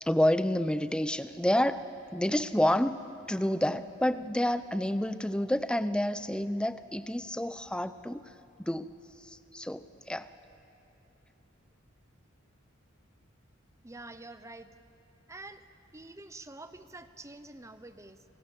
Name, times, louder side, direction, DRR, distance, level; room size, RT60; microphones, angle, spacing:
voice 1, 0.0-1.8 2.1-3.0 3.3-8.2 8.6-8.9 9.2-10.3, left 1 dB, 5° left, 12 dB, 0.6 m, -29 dB
voice 2, 13.8-14.7 15.3-15.6 15.9-18.2, right 2 dB, 15° right, 11 dB, 0.9 m, -47 dB
28.0 x 27.0 x 7.4 m, 2.9 s
head